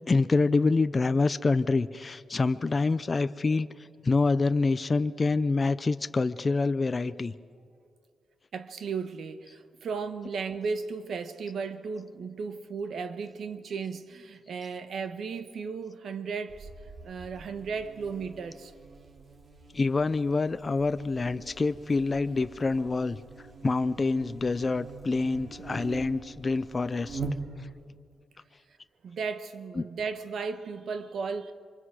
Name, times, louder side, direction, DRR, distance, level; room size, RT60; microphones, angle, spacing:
voice 1, 0.1-3.7 4.0-7.3 19.7-23.2 23.6-27.2 29.8-29.9, left 3 dB, 30° left, 0.5 m, -26 dB
voice 2, 8.5-16.7 17.0-18.7 29.0-31.5, right 5 dB, 65° right, 1.3 m, -35 dB
Buzz, 16.5-27.9, right 3 dB, 45° right, 2.4 m, -43 dB
27.5 x 24.5 x 4.9 m
cardioid pair, 110°, 0 cm